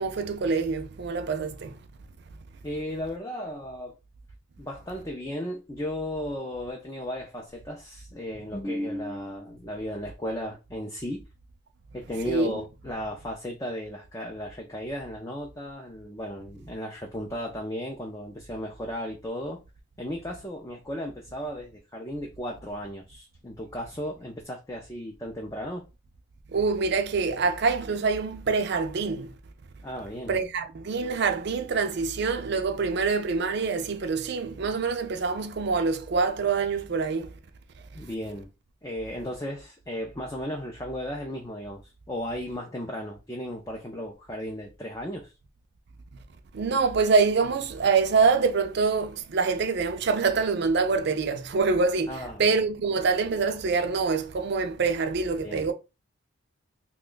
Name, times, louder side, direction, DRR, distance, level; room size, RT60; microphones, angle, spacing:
voice 1, 0.0-1.8 12.2-12.5 26.5-29.3 30.3-37.3 46.5-55.7, right 4 dB, 55° right, 0.4 m, -25 dB
voice 2, 2.6-4.0 4.6-11.2 11.9-19.6 20.0-25.8 29.8-30.4 37.9-38.5 38.8-41.8 42.1-45.3 52.1-52.6 55.4-55.7, equal, 15° left, 0.4 m, -35 dB
2.9 x 2.2 x 3.8 m
head